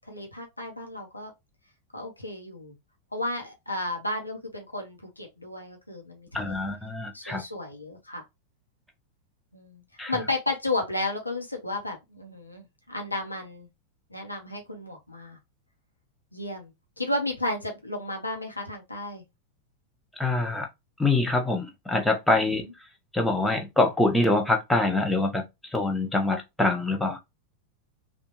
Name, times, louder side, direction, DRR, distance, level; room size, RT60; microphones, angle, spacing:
voice 1, 0.1-1.3 1.9-2.7 3.1-6.7 7.1-8.2 9.5-9.8 10.1-13.7 14.1-15.4 16.3-16.7 17.0-19.2 22.6-22.7, left 2 dB, 85° left, 0.9 m, -33 dB
voice 2, 6.3-7.4 10.0-10.1 20.2-20.7 21.0-22.6 23.1-25.4 25.7-27.2, left 2 dB, 5° left, 0.8 m, -24 dB
3.4 x 2.4 x 2.8 m
figure-of-eight pair, 90°, 0 cm